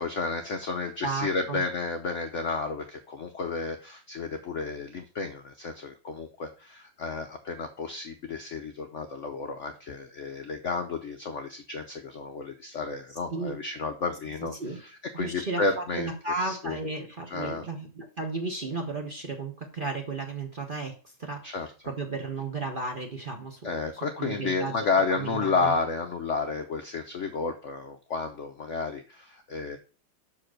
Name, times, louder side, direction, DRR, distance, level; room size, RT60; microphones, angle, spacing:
voice 1, 0.0-16.8 17.3-17.7 21.4-21.7 23.6-29.8, left 4 dB, 60° left, 5 dB, 0.7 m, -31 dB
voice 2, 1.0-1.6 13.3-13.6 14.4-14.8 15.1-21.6 21.8-23.7 24.2-24.7 25.1-25.7, right 3 dB, 35° right, 3 dB, 0.9 m, -34 dB
5.9 x 4.7 x 6.4 m, 0.36 s
omnidirectional pair, 2.1 m